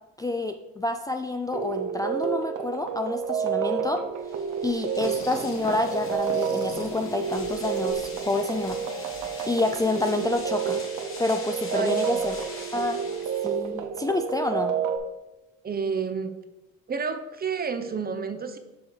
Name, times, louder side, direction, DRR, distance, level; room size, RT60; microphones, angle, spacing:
voice 1, 0.2-4.0 4.6-9.1 9.5-10.8 11.2-12.4 12.7-13.0 13.4-14.7, left 2 dB, 10° left, 5 dB, 0.3 m, -28 dB
sound 1, 1.5-15.0, right 7 dB, 75° right, 0.8 m, -30 dB
sound 2, 4.2-13.9, left 3 dB, 45° left, 1.4 m, -44 dB
sound 3, 5.0-10.2, left 3 dB, 65° left, 1.4 m, -43 dB
voice 2, 11.7-12.2 15.6-16.3 16.9-18.6, right 5 dB, 30° right, 9 dB, 0.7 m, -30 dB
7.0 x 3.2 x 5.6 m, 1.0 s
cardioid pair, 90°, 30 cm